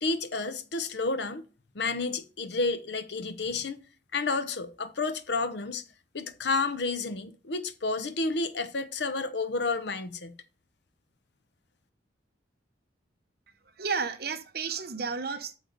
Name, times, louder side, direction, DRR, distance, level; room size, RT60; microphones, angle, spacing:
voice 1, 0.0-1.4 1.7-3.8 4.1-5.8 6.1-10.3, left 3 dB, 70° left, 0.8 m, -30 dB
voice 2, 13.8-15.5, right 5 dB, 55° right, 0.9 m, -32 dB
9.3 x 6.4 x 4.0 m
head